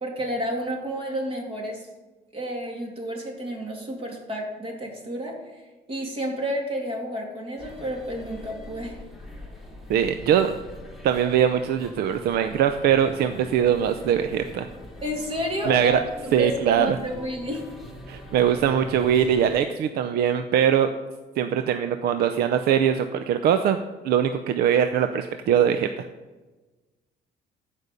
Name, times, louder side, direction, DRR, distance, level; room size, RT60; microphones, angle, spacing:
voice 1, 0.0-1.9 2.3-5.3 5.9-9.0 15.0-16.0 16.2-17.6, equal, 35° right, 0 dB, 3.0 m, -30 dB
sound 1, 7.6-19.6, equal, ahead, 2.0 m, -43 dB
voice 2, 9.9-10.5 11.0-14.7 15.7-16.0 16.3-17.0 18.1-20.9 21.4-23.8 24.0-26.1, right 9 dB, 65° right, 8 dB, 0.6 m, -22 dB
14.5 x 5.4 x 5.4 m, 1.2 s
cardioid pair, 110°, 17 cm